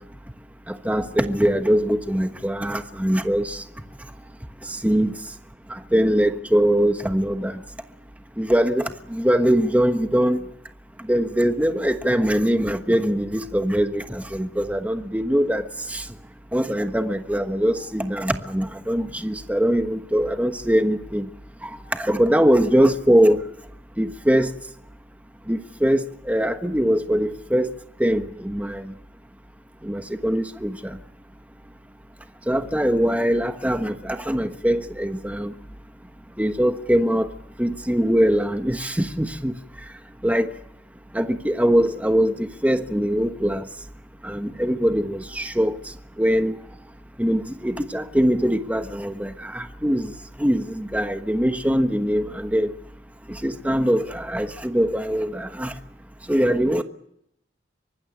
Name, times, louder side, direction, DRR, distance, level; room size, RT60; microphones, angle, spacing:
voice 1, 0.7-3.6 4.7-5.1 5.7-7.6 8.4-10.4 11.1-15.6 15.9-16.0 16.5-21.2 21.6-23.5 24.0-24.5 25.5-27.7 28.0-28.9 29.8-31.0 32.5-35.5 36.4-37.3 37.6-39.5 40.2-40.5 41.1-43.6 44.2-45.8 46.2-46.6 47.2-50.1 50.4-52.7 53.3-55.7 56.3-56.8, equal, 10° right, 7 dB, 1.2 m, -22 dB
24.0 x 20.0 x 8.8 m, 0.76 s
head